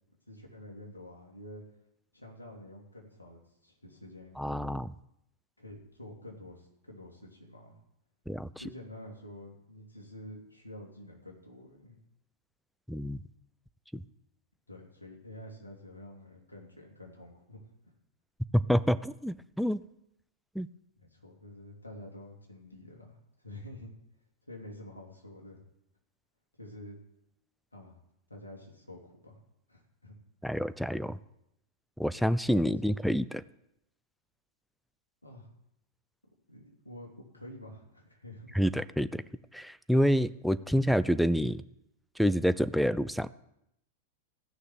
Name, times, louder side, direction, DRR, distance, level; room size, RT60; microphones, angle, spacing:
voice 1, 0.3-1.6 2.1-4.4 5.6-7.8 8.6-12.0 14.7-17.9 21.0-23.9 24.5-25.6 26.5-27.0 27.7-28.0 28.3-29.4 29.7-30.2 32.6-33.1 35.2-35.5 36.5-38.6, left 1 dB, 85° left, 0 dB, 3.0 m, -48 dB
voice 2, 4.4-4.9 8.3-8.5 12.9-13.2 13.9-14.0 18.5-19.8 20.6-20.7 30.4-31.2 32.0-33.4 38.5-39.2 39.5-41.6 42.2-43.3, equal, ahead, 15 dB, 0.5 m, -27 dB
15.5 x 6.5 x 9.2 m, 0.82 s
figure-of-eight pair, 95°, 0 cm